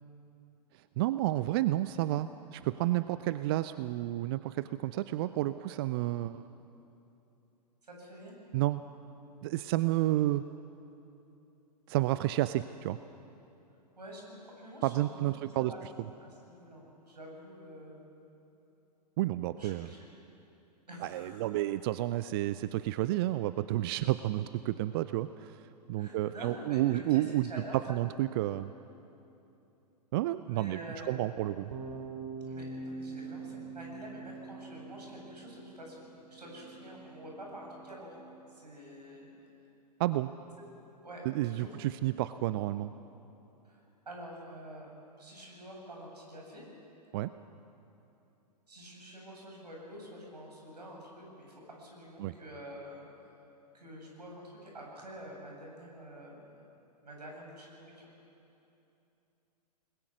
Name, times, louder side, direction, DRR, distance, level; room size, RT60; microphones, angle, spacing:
voice 1, 0.7-6.4 8.5-8.8 9.4-10.4 11.9-13.0 14.8-15.7 19.2-19.9 21.0-27.5 27.9-28.7 30.1-30.8 31.1-31.7 40.0-40.3 41.2-42.9 47.1-47.3 52.2-52.3, right 15 dB, 35° right, 14 dB, 0.5 m, -31 dB
voice 2, 7.8-8.3 14.0-15.8 16.2-18.0 19.6-20.0 20.9-21.4 26.0-28.0 30.4-31.3 32.5-38.1 38.5-39.3 41.0-41.8 43.6-44.9 45.2-46.6 48.7-53.0 53.7-56.6 57.0-58.1, equal, 75° right, -1 dB, 7.6 m, -47 dB
sound 1, 31.7-38.0, right 4 dB, 60° right, 2.6 m, -44 dB
29.5 x 20.5 x 6.2 m, 2.9 s
figure-of-eight pair, 105°, 21 cm